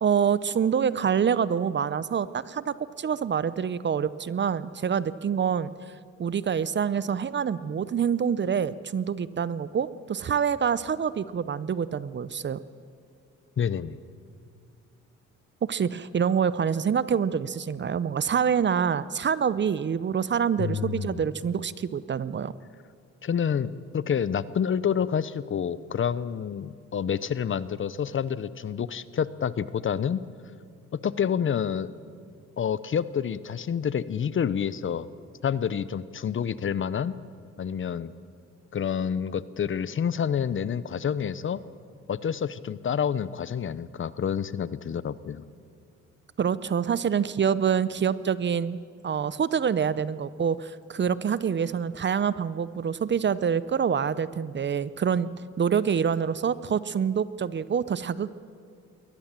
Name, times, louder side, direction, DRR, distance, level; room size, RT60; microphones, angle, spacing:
voice 1, 0.0-5.7 6.2-12.6 15.6-22.5 46.4-48.8 49.0-55.3 55.6-58.3, right 7 dB, 40° right, 17 dB, 0.7 m, -26 dB
voice 2, 13.6-14.0 20.6-21.2 23.2-30.2 30.9-31.9 32.6-35.1 35.4-37.1 37.6-38.1 38.7-41.6 42.1-45.4, left 8 dB, 40° left, 17 dB, 0.8 m, -28 dB
22.0 x 18.5 x 7.5 m, 2.2 s
cardioid pair, 90°, 30 cm